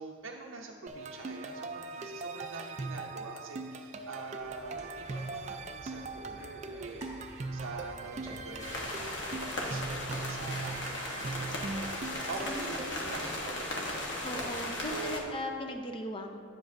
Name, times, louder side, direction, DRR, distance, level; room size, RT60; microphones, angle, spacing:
voice 1, 0.0-7.0 7.5-14.2 14.9-15.4, right 3 dB, 85° right, 0 dB, 0.5 m, -44 dB
sound 1, 0.9-13.2, right 3 dB, 35° right, 0.3 m, -40 dB
sound 2, 4.4-11.3, right 1 dB, 15° right, 1.3 m, -50 dB
sound 3, 8.6-15.2, left 1 dB, 65° left, 1.1 m, -37 dB
voice 2, 12.4-12.8 14.2-16.4, left 1 dB, 25° left, 4 dB, 0.5 m, -38 dB
9.7 x 7.3 x 2.6 m, 2.3 s
head